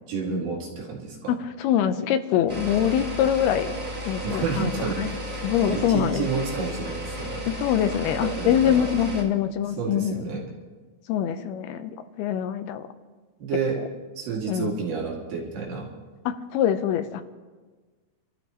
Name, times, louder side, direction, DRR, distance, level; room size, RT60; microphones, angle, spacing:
voice 1, 0.1-1.3 2.6-2.9 4.2-7.4 8.2-8.8 9.8-10.4 13.4-13.8 14.2-15.9, right 5 dB, 65° right, -3 dB, 3.9 m, -30 dB
voice 2, 1.3-3.7 4.0-5.1 5.4-6.3 7.5-10.2 11.1-12.9 13.8-13.9 14.5-14.8 16.3-17.2, left 9 dB, 80° left, 9 dB, 2.7 m, -24 dB
sound 1, 2.5-9.2, equal, 15° right, 2.3 m, -34 dB
29.5 x 13.5 x 3.0 m, 1.4 s
omnidirectional pair, 4.6 m